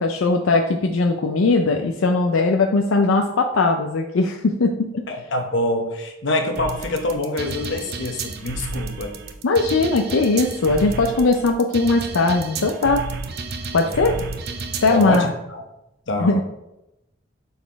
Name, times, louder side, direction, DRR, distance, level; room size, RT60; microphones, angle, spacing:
voice 1, 0.0-5.0 9.4-13.1 13.7-14.2 14.8-15.3 16.2-16.4, left 3 dB, 90° left, 3 dB, 0.5 m, -19 dB
voice 2, 5.1-9.1 13.8-14.2 14.9-15.6 16.1-16.4, left 1 dB, 65° left, 4 dB, 1.0 m, -25 dB
sound 1, 6.6-15.2, right 4 dB, 50° right, 0.6 m, -32 dB
5.8 x 4.3 x 4.6 m, 0.90 s
head